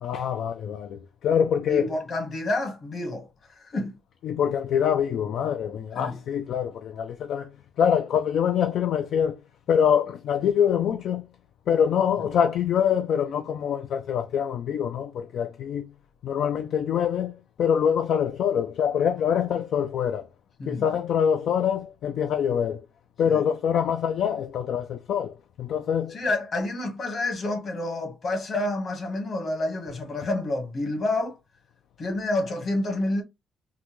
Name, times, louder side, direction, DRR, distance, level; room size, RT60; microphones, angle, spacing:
voice 1, 0.0-1.9 4.2-7.5 7.8-9.3 9.7-11.3 11.7-15.9 16.2-20.2 20.7-22.8 23.2-26.2, left 8 dB, 70° left, 0.3 m, -25 dB
voice 2, 1.7-4.0 6.0-6.2 12.2-12.3 20.6-20.8 23.3-23.4 26.1-31.4 32.0-33.2, left 2 dB, 50° left, 1.3 m, -29 dB
3.7 x 2.2 x 3.0 m
cardioid pair, 90°, 0 cm